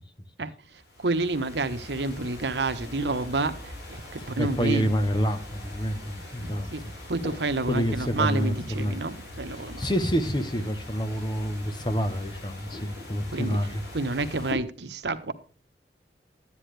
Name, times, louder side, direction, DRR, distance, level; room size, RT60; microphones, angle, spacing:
voice 1, 0.4-4.9 6.7-6.8 7.1-9.9 13.3-13.6 13.9-15.3, right 3 dB, 80° right, 9 dB, 1.1 m, -29 dB
sound 1, 0.7-14.5, left 1 dB, 70° left, 4.7 m, -42 dB
voice 2, 4.4-6.9 7.7-9.0 9.5-13.8, equal, 25° left, 9 dB, 1.1 m, -28 dB
11.5 x 9.8 x 3.3 m, 0.40 s
head